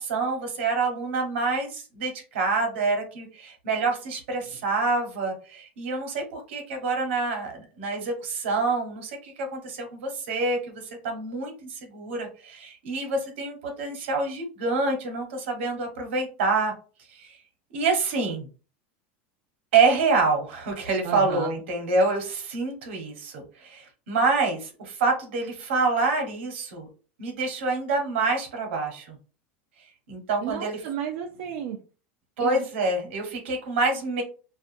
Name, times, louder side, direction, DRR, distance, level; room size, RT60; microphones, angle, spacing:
voice 1, 0.0-16.7 17.1-17.4 17.7-18.5 19.7-26.9 27.2-29.2 30.1-30.8 32.4-34.2, right 3 dB, 90° right, 3 dB, 1.1 m, -27 dB
voice 2, 21.0-21.5 30.4-31.8 32.4-32.7, right 8 dB, 70° right, 2 dB, 0.4 m, -33 dB
2.4 x 2.4 x 2.5 m, 0.35 s
supercardioid pair, 125°, 6 cm